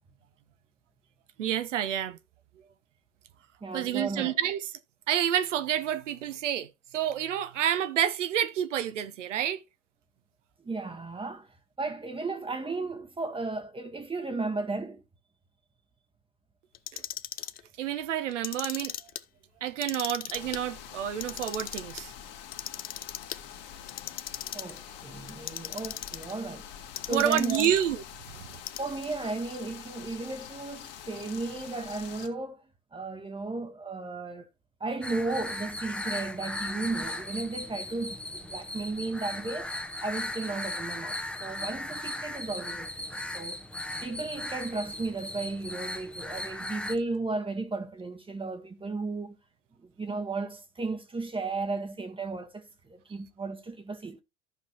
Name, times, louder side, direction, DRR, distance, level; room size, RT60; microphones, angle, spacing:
voice 1, 1.4-2.2 3.7-4.7 5.1-6.7 6.9-9.6 16.9-17.0 17.8-18.9 19.6-22.1 27.1-28.0 28.3-28.6, right 10 dB, 65° right, 0.9 m, -29 dB
voice 2, 3.6-4.4 10.6-15.0 24.5-26.7 27.1-27.7 28.8-32.7 32.9-34.5 34.8-43.6 44.0-49.3 49.8-54.2, right 3 dB, 15° right, 1.2 m, -35 dB
Clock, 16.7-17.6 18.3-19.2 19.7-20.6 21.1-22.0 22.5-23.4 23.9-24.8 25.3-26.3 27.0-27.9 28.5-29.1, left 12 dB, 25° left, 0.5 m, -37 dB
sound 1, 20.3-32.3, left 9 dB, 55° left, 2.0 m, -45 dB
sound 2, 35.0-47.0, left 1 dB, 5° left, 0.9 m, -37 dB
14.0 x 5.5 x 2.9 m
figure-of-eight pair, 75°, 39 cm